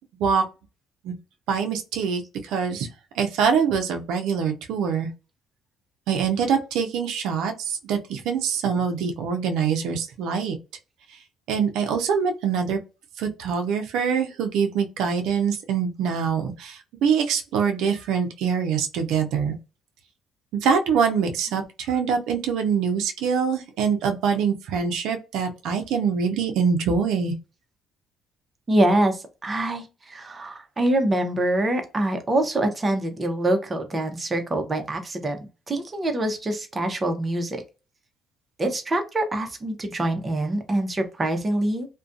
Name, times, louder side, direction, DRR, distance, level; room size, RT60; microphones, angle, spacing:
voice 1, 1.5-2.9 3.1-5.1 6.1-10.6 11.5-12.8 13.2-19.5 20.5-27.3, right 6 dB, 85° right, 0.5 m, -24 dB
voice 2, 28.7-35.4 35.7-37.6 38.6-41.9, right 1 dB, 25° right, 0.6 m, -25 dB
2.4 x 2.1 x 2.5 m
cardioid pair, 110°, 0 cm